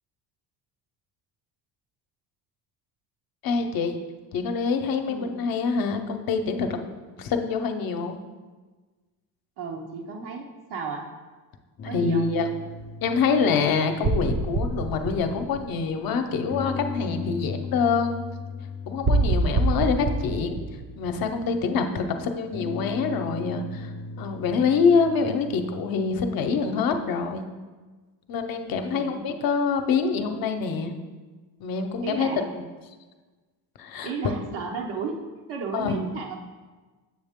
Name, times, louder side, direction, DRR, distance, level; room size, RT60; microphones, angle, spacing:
voice 1, 3.4-3.9 4.3-6.8 7.2-8.2 11.9-12.5 13.0-18.1 18.9-20.6 21.0-23.9 24.2-27.5 28.3-30.9 31.6-32.3 32.5-32.6 33.8-34.3 35.7-36.0, left 5 dB, 55° left, 6 dB, 0.8 m, -25 dB
voice 2, 9.6-11.1 11.8-12.2 28.9-29.3 32.0-32.5 34.0-35.2 35.5-36.4, right 5 dB, 70° right, 0 dB, 0.9 m, -33 dB
sound 1, 11.8-15.7 16.5-21.6 22.5-26.7, left 4 dB, 30° left, 0.4 m, -38 dB
sound 2, 14.0-16.3 19.0-21.6, right 2 dB, 30° right, 0.6 m, -26 dB
7.7 x 6.5 x 3.6 m, 1.3 s
cardioid pair, 130°, 42 cm